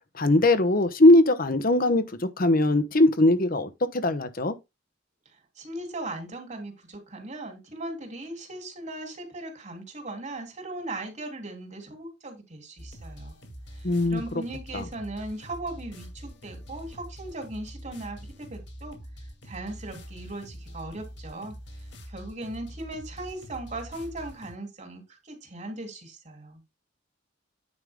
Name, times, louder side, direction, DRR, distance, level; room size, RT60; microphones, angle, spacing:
voice 1, 0.2-4.5 13.8-14.2 14.7-14.9, left 1 dB, 50° left, 1.1 m, -20 dB
voice 2, 5.6-13.3 13.8-19.0 19.4-21.6 22.1-26.6, right 2 dB, 40° right, 3.3 m, -38 dB
sound 1, 12.8-24.6, equal, 65° left, 2.4 m, -44 dB
9.7 x 5.4 x 3.7 m
head